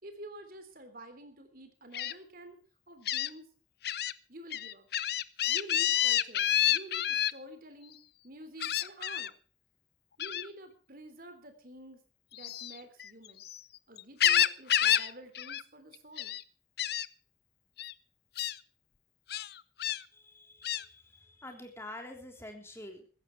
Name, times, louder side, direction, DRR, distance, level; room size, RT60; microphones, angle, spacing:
voice 1, 0.0-2.6 2.9-3.5 4.3-4.9 5.5-8.0 8.2-9.3 10.2-12.0 12.3-13.4 13.9-16.3, right 1 dB, 45° right, 8 dB, 3.4 m, -49 dB
Gull seagull, 1.9-2.1 3.1-3.3 3.8-4.1 4.5-7.3 8.6-9.3 10.2-10.5 12.3-13.6 14.0-15.1 15.4-15.6 15.9-16.4 16.8-17.1 17.8-17.9 18.4-18.6 19.3-20.0 20.6-20.8, left 11 dB, 55° left, 0.7 m, -29 dB
voice 2, 20.1-23.1, left 1 dB, 15° left, 3 dB, 3.5 m, -47 dB
15.5 x 15.0 x 4.6 m, 0.39 s
head